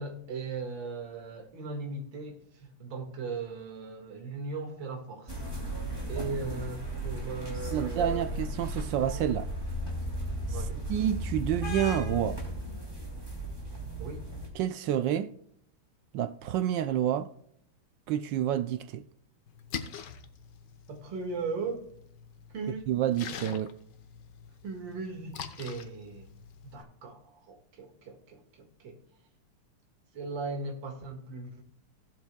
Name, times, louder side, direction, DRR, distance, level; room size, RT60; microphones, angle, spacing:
voice 1, 0.0-5.4 6.1-8.3 10.5-10.8 14.0-14.2 20.9-21.9 22.5-22.9 24.6-26.3 26.6-29.0 30.1-31.6, right 4 dB, 60° right, 2.4 m, -38 dB
sound 1, 5.3-14.5, equal, 10° right, 2.5 m, -35 dB
voice 2, 7.7-9.5 10.9-12.4 14.5-15.3 16.1-17.3 18.1-19.0 22.9-23.7, right 10 dB, 75° right, 1.1 m, -29 dB
Splash splatter, 19.5-26.8, left 7 dB, 60° left, 1.4 m, -44 dB
17.0 x 8.2 x 2.2 m
omnidirectional pair, 2.4 m